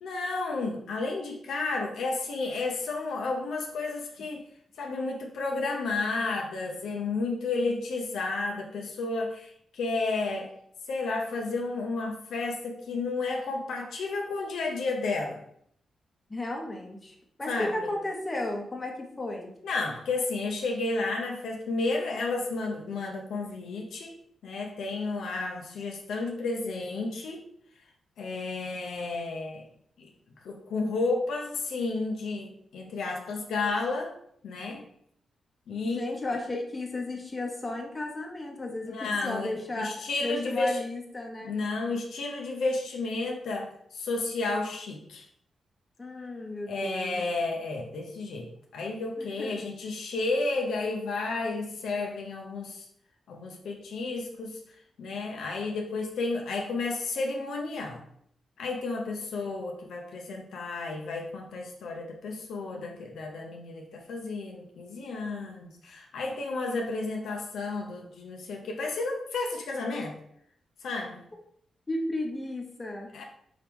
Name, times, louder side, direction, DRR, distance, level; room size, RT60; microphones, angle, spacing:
voice 1, 0.0-4.5 4.8-10.5 10.9-15.4 17.5-17.9 19.6-27.4 28.2-29.6 30.0-30.1 30.4-34.1 34.4-34.8 35.7-36.1 38.9-39.5 39.8-40.8 41.4-45.2 46.7-52.9 53.3-54.6 55.0-58.0 58.6-70.2 70.8-71.2 73.1-73.2, left 3 dB, 85° left, 1 dB, 0.7 m, -32 dB
voice 2, 16.3-19.5 35.8-39.9 40.2-41.5 46.0-47.2 49.2-49.7 71.9-73.1, left 2 dB, 25° left, 0 dB, 1.0 m, -34 dB
4.7 x 3.0 x 3.5 m, 0.68 s
cardioid pair, 95°, 0 cm